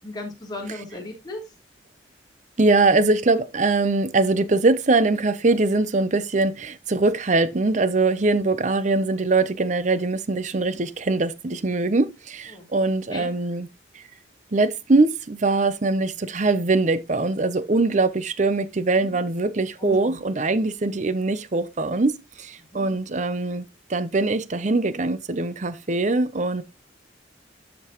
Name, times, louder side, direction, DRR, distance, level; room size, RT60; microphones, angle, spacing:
voice 1, 0.0-1.4 12.5-12.7 13.1-13.3 19.0-19.2 19.8-20.2 22.7-23.0, left 2 dB, 20° left, 3.0 m, -36 dB
voice 2, 2.6-13.7 13.9-14.0 14.5-26.6, right 3 dB, 40° right, 0.6 m, -22 dB
12.5 x 5.3 x 3.0 m
head